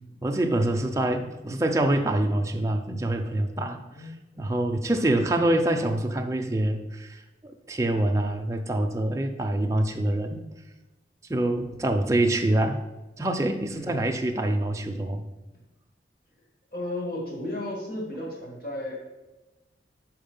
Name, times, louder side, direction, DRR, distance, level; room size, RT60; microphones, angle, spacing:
voice 1, 0.2-4.1 4.4-10.5 11.3-12.8 13.2-15.3, right 1 dB, 15° right, 4 dB, 0.5 m, -25 dB
voice 2, 3.9-4.8 13.8-14.0 16.7-19.0, left 1 dB, 55° left, -3 dB, 2.0 m, -35 dB
5.7 x 4.7 x 5.3 m, 1.1 s
head